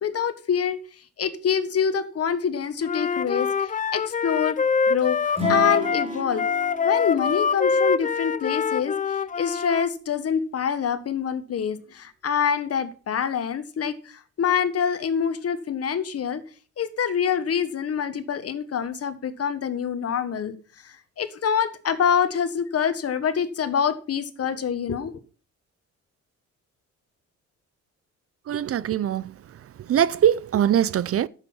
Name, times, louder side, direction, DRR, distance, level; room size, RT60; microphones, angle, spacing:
voice 1, 0.0-0.8 1.2-4.6 4.9-6.5 6.8-9.0 9.4-16.4 16.8-20.6 20.8-25.2, left 7 dB, 50° left, 1.5 m, -26 dB
Wind instrument woodwind instrument, 2.8-9.9, left 6 dB, 25° left, 0.5 m, -24 dB
Acoustic guitar / Strum, 5.3-8.6, right 1 dB, 20° right, 4.3 m, -33 dB
voice 2, 28.5-29.3 29.9-31.3, right 10 dB, 50° right, 0.6 m, -22 dB
11.0 x 8.1 x 5.6 m
cardioid pair, 90°, 30 cm